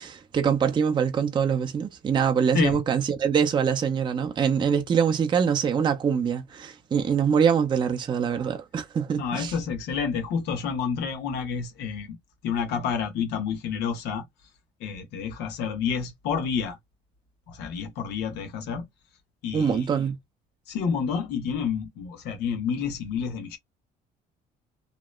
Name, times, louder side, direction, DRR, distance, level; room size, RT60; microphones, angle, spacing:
voice 1, 0.0-9.5 19.5-20.2, right 7 dB, 30° right, 0.4 m, -24 dB
voice 2, 9.2-12.2 12.4-14.2 14.8-16.8 17.5-18.9 19.4-19.9 20.7-23.6, left 6 dB, 85° left, 0.9 m, -29 dB
2.8 x 2.0 x 2.2 m
cardioid pair, 110°, 17 cm